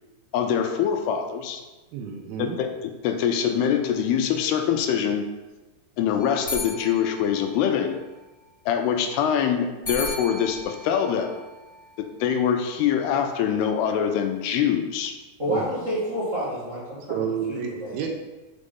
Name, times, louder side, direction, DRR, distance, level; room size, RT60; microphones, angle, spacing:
voice 1, 0.3-1.6 2.4-5.2 6.0-8.0 8.7-11.4 12.0-15.1, left 8 dB, 80° left, 6 dB, 2.5 m, -24 dB
voice 2, 1.9-2.6 15.5-15.6 17.1-18.1, right 7 dB, 80° right, 2 dB, 2.5 m, -30 dB
sound 1, 6.2-8.2 9.8-12.2, left 2 dB, 25° left, 1.3 m, -36 dB
voice 3, 15.4-17.2 17.5-17.9, equal, 50° right, -9 dB, 0.9 m, -29 dB
6.5 x 4.9 x 5.3 m, 1.1 s
omnidirectional pair, 4.8 m